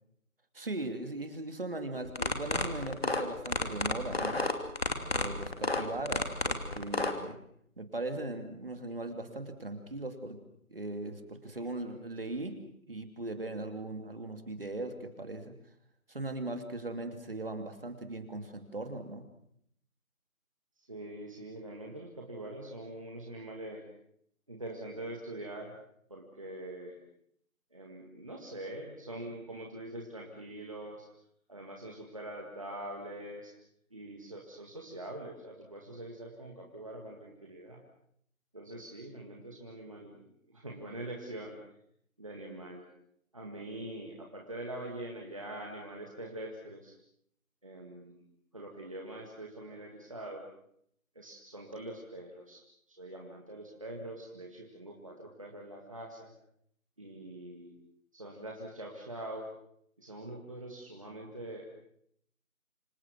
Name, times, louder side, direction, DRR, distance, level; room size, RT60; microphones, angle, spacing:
voice 1, 0.5-4.4 5.1-7.4 7.8-10.4 10.7-12.6 12.9-15.5 16.1-19.3, right 2 dB, 40° right, 7 dB, 2.8 m, -39 dB
sound 1, 2.1-7.1, left 2 dB, 45° left, 2.7 m, -30 dB
voice 2, 20.9-23.8 24.5-25.8 26.1-27.0 27.7-31.1 31.5-33.5 33.9-37.8 38.5-41.6 42.2-42.8 43.3-47.0 47.6-48.2 48.5-50.5 51.2-56.3 57.0-57.8 58.1-59.5 60.0-61.7, right 1 dB, 25° right, -1 dB, 2.0 m, -44 dB
27.0 x 24.0 x 6.2 m, 0.69 s
figure-of-eight pair, 175°, 42 cm